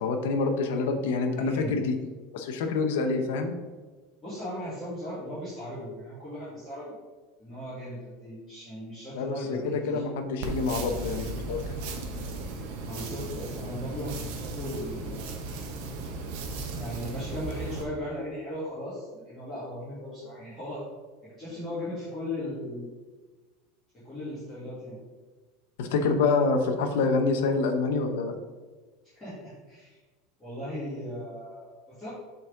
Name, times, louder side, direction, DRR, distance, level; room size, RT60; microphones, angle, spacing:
voice 1, 0.0-2.0 2.3-3.5 9.1-11.6 25.8-28.3, left 4 dB, 70° left, 6 dB, 0.8 m, -26 dB
voice 2, 1.3-1.8 4.2-6.9 7.4-10.0 12.8-15.4 16.8-20.8 21.2-22.9 24.0-25.0 29.2-30.0 30.4-32.1, left 1 dB, 15° left, -13 dB, 2.0 m, -37 dB
sound 1, 10.4-17.8, right 3 dB, 55° right, 0.9 m, -36 dB
7.0 x 4.0 x 3.8 m, 1.3 s
supercardioid pair, 175°, 0 cm